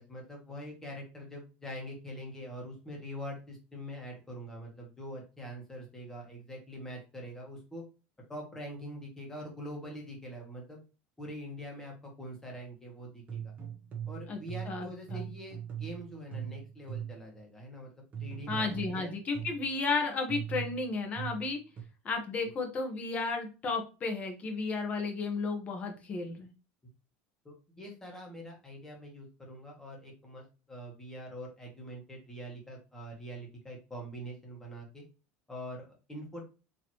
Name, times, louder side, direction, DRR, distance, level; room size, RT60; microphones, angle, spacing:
voice 1, 0.0-7.8 8.3-10.8 11.2-13.5 14.1-19.1 27.4-35.0 35.5-36.5, equal, 10° left, -1 dB, 1.4 m, -44 dB
sound 1, 13.3-17.3 18.1-19.7 20.3-21.8, right 9 dB, 30° right, 1.0 m, -40 dB
voice 2, 14.7-15.3 18.5-21.6 22.0-26.5, left 4 dB, 25° left, 3 dB, 1.0 m, -33 dB
4.3 x 3.0 x 3.0 m, 0.32 s
cardioid pair, 160°, 5 cm